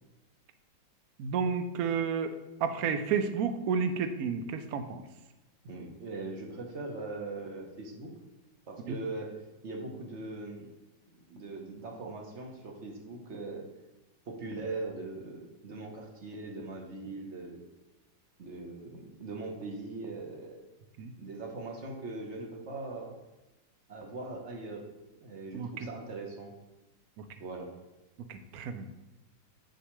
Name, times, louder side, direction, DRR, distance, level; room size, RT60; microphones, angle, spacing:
voice 1, 1.2-2.3 2.6-5.0 8.9-9.0 21.0-21.1 25.5-25.9 27.2-27.3 28.3-28.9, right 6 dB, 65° right, 9 dB, 0.9 m, -31 dB
voice 2, 5.6-8.1 8.7-9.3 9.6-10.7 11.3-13.7 14.3-17.6 18.4-20.6 21.2-23.1 23.9-24.8 25.1-26.5 27.4-27.7, right 3 dB, 45° right, 1 dB, 1.2 m, -40 dB
8.0 x 6.5 x 3.1 m, 1.1 s
omnidirectional pair, 2.0 m